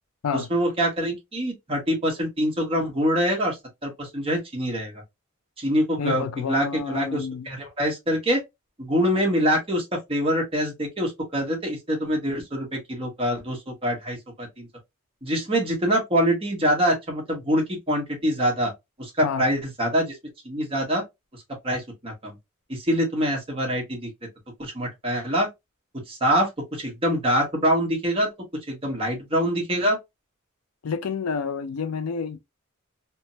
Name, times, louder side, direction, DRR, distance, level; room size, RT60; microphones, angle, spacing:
voice 1, 0.5-3.6 3.8-5.0 5.6-8.4 8.8-14.7 15.2-18.7 19.0-20.1 20.4-21.0 21.6-22.3 22.7-24.1 24.6-25.5 26.1-28.3 28.7-30.0, equal, 25° right, 1.1 m, -25 dB
voice 2, 6.0-7.5 19.2-19.4 30.8-32.4, left 5 dB, 85° left, 0.5 m, -29 dB
3.4 x 2.1 x 2.6 m
head